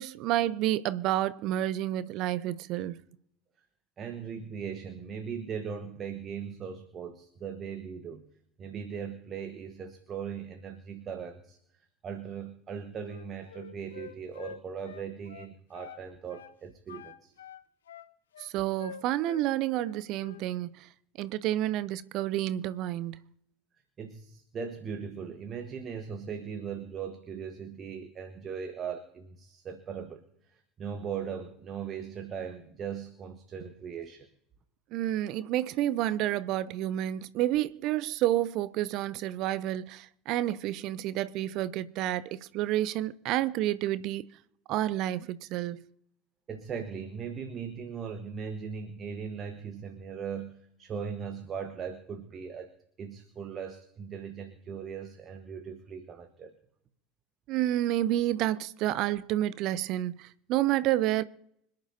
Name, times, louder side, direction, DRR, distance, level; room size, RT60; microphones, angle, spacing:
voice 1, 0.0-3.0 18.4-20.9 21.2-23.2 34.9-44.3 44.7-45.9 57.5-61.2, right 13 dB, 50° right, 0.6 m, -29 dB
voice 2, 4.0-8.2 8.6-11.6 12.0-17.3 24.0-30.2 30.5-34.3 46.5-52.7 53.0-56.5, right 7 dB, 35° right, 1.3 m, -39 dB
Wind instrument woodwind instrument, 13.0-16.0 16.3-16.6 16.9-19.4 19.7-20.5, left 8 dB, 70° left, 0.7 m, -47 dB
26.0 x 10.5 x 2.7 m
figure-of-eight pair, 75°, 0 cm